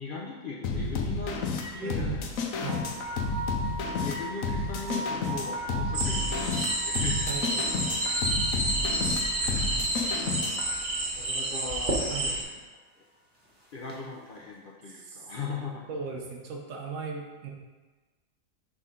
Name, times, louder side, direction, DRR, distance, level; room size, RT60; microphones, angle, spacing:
voice 1, 0.0-1.4 1.7-2.6 4.0-7.3 11.1-12.6 13.0-13.1 13.7-15.9, left 4 dB, 55° left, -2 dB, 0.6 m, -39 dB
sound 1, 0.6-10.7, left 4 dB, 85° left, 1.1 m, -31 dB
voice 2, 1.8-2.2 2.6-2.9 7.3-7.5 12.1-12.3 14.9-15.2 15.9-17.5, right 5 dB, 70° right, 1 dB, 1.2 m, -37 dB
sound 2, 2.7-10.4 10.6-10.7 13.9-14.0, right 2 dB, 10° right, 1.1 m, -39 dB
sound 3, 5.9-12.4, right 1 dB, 40° right, 1.1 m, -29 dB
6.3 x 4.1 x 3.7 m, 1.3 s
omnidirectional pair, 1.4 m